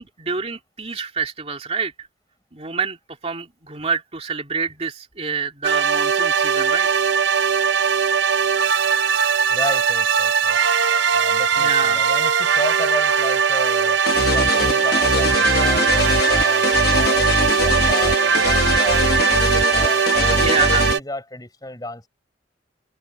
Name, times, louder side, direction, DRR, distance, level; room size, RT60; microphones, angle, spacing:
voice 1, 0.0-2.1 2.5-3.0 3.2-6.9 11.6-12.0 20.0-20.8, right 5 dB, 35° right, 2.8 m, -27 dB
sound 1, 5.6-21.0, right 6 dB, 80° right, 0.7 m, -19 dB
voice 2, 9.5-10.6 11.1-14.0 14.3-19.0 19.7-22.1, left 1 dB, 20° left, 5.5 m, -33 dB
sound 2, 14.1-20.9, left 3 dB, 60° left, 1.1 m, -22 dB
head